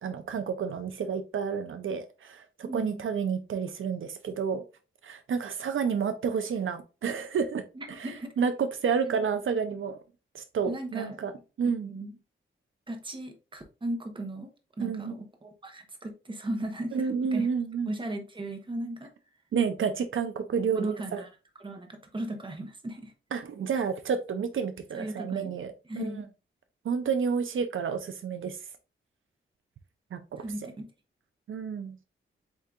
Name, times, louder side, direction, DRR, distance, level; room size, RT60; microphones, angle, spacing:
voice 1, 0.0-4.6 5.0-7.6 8.0-10.0 10.3-11.3 11.6-11.9 14.8-15.1 16.9-17.9 19.5-21.2 23.3-26.1 26.8-28.6 30.1-30.4 31.5-32.0, right 6 dB, 75° right, 0.5 m, -30 dB
voice 2, 2.7-3.0 7.7-8.3 9.0-9.2 10.6-11.2 11.6-12.1 12.9-14.5 14.8-17.5 17.9-19.1 20.7-21.3 21.6-23.1 23.7-23.8 24.9-25.6 25.9-26.2 30.4-30.9, right 1 dB, 25° right, 0.9 m, -37 dB
8.0 x 2.8 x 2.4 m
wide cardioid pair, 150°, 21 cm